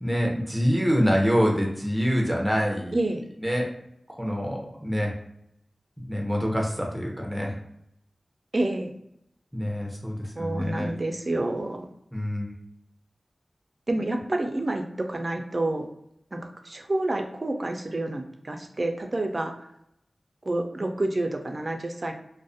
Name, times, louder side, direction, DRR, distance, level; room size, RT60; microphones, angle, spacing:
voice 1, 0.0-3.0 3.4-3.7 4.2-5.1 6.1-7.5 9.5-10.9 12.1-12.5, equal, 5° right, -1 dB, 0.6 m, -25 dB
voice 2, 8.5-8.9 10.3-11.9 13.9-15.9 16.3-19.5 20.4-22.1, right 2 dB, 45° right, 4 dB, 0.3 m, -28 dB
2.4 x 2.0 x 2.6 m, 0.75 s
wide cardioid pair, 65°, 0 cm